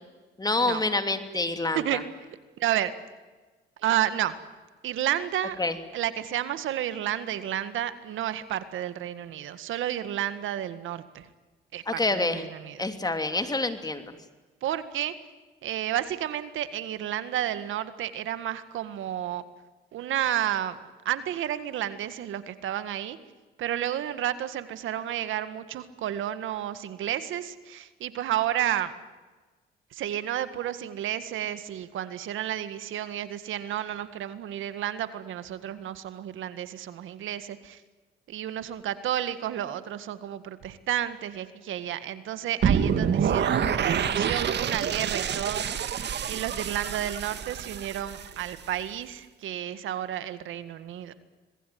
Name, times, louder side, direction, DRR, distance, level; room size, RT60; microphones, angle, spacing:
voice 1, 0.4-2.0 5.6-5.8 11.9-12.4 12.8-14.1, left 2 dB, 20° left, 8 dB, 3.0 m, -27 dB
voice 2, 2.6-2.9 3.8-4.4 4.8-5.6 5.9-11.3 11.7-12.9 14.6-15.1 15.6-19.4 19.9-23.2 23.6-28.9 29.9-37.8 38.3-45.6 46.3-51.1, right 11 dB, 80° right, 12 dB, 1.8 m, -31 dB
sound 1, 42.6-48.7, right 8 dB, 60° right, 2.0 m, -27 dB
26.0 x 20.5 x 9.4 m, 1.3 s
cardioid pair, 90°, 20 cm